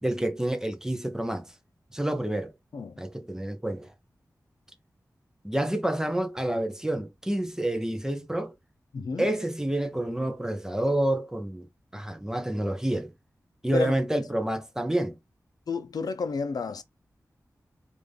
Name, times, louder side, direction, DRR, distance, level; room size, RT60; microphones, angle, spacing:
voice 1, 0.0-1.5 1.9-2.5 3.0-3.9 5.4-8.5 9.2-11.7 11.9-13.1 13.6-15.2, right 1 dB, 10° right, 0.7 m, -28 dB
voice 2, 8.9-9.2 13.7-14.0 15.7-16.8, left 4 dB, 80° left, 0.5 m, -30 dB
3.5 x 2.6 x 3.3 m
wide cardioid pair, 95°, 7 cm